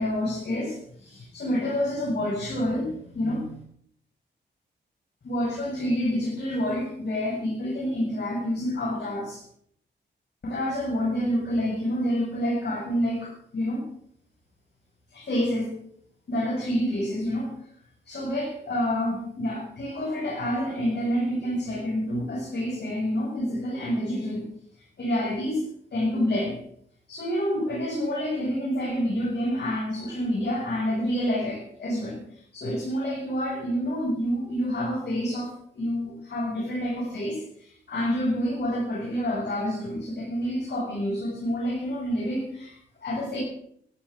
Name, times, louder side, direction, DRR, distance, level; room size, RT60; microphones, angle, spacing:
voice 1, 0.0-3.5 5.2-9.4 10.4-13.8 15.1-15.8 16.3-17.5 18.1-24.5 25.0-25.6 25.9-26.6 27.1-43.4, equal, 60° left, -4 dB, 7.3 m, -28 dB
14.5 x 12.5 x 7.8 m, 0.67 s
cardioid pair, 75°, 19 cm